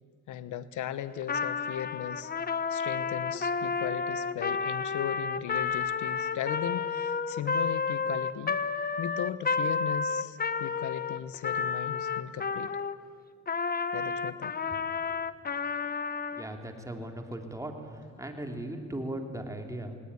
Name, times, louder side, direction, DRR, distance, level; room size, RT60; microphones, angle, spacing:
voice 1, 0.3-2.3 2.7-8.6 9.0-12.7 13.9-14.5, left 10 dB, 75° left, 14 dB, 0.9 m, -37 dB
Trumpet, 1.2-13.0 13.5-16.5, left 5 dB, 30° left, 1.0 m, -31 dB
voice 2, 16.3-20.0, right 1 dB, 10° right, 3 dB, 3.0 m, -38 dB
19.5 x 18.5 x 9.6 m, 2.1 s
cardioid pair, 90°, 30 cm